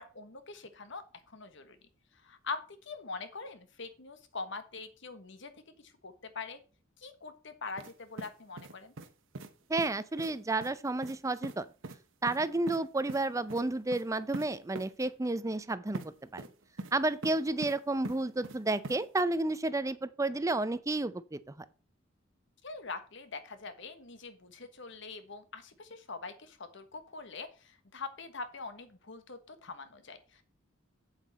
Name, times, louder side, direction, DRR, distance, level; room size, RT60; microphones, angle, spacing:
voice 1, 0.0-1.8 2.2-5.5 5.8-6.6 7.0-8.9 22.6-30.4, left 4 dB, 65° left, 1.3 m, -43 dB
sound 1, 7.8-9.1 9.3-9.5 9.8-9.9 10.2-10.3 10.6-10.7 11.0-11.2 11.4-11.6 11.8-12.0 12.3-12.8 13.1-13.2 13.5-13.6 13.9-14.0 14.3-14.5 14.7-14.9 15.9-16.1 16.4-16.9 17.2-17.7 18.0-18.6 18.8-19.0, right 2 dB, 70° right, 1.0 m, -41 dB
voice 2, 9.7-11.7 12.2-16.4 16.9-21.6, right 2 dB, 15° right, 0.5 m, -31 dB
8.2 x 7.6 x 4.1 m
head